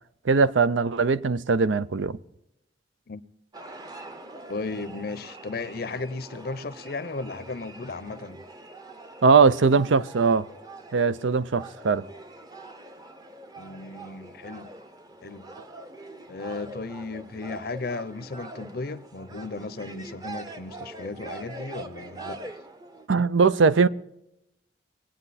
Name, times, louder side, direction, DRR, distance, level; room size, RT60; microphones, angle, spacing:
voice 1, 0.3-2.2 9.2-10.5 10.9-12.0 23.1-23.9, right 4 dB, 90° right, 0.6 m, -20 dB
sound 1, 3.5-23.1, right 2 dB, 20° right, 0.7 m, -43 dB
voice 2, 4.5-8.4 13.6-14.7 15.2-15.5 16.3-22.4, left 3 dB, 55° left, 0.6 m, -35 dB
21.0 x 8.9 x 4.1 m
head